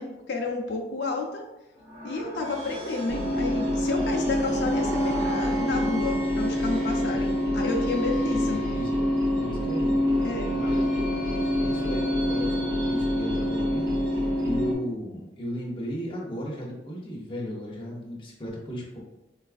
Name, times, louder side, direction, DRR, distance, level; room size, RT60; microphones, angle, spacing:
voice 1, 0.0-1.4 2.0-8.6 10.2-10.5, left 3 dB, 80° left, 1 dB, 0.4 m, -31 dB
sound 1, 1.7-14.3, left 1 dB, 45° right, 1.1 m, -35 dB
sound 2, 3.1-14.7, equal, 65° right, 0.6 m, -26 dB
voice 2, 8.2-19.0, equal, 30° left, -3 dB, 0.7 m, -36 dB
4.0 x 2.4 x 2.4 m, 0.98 s
head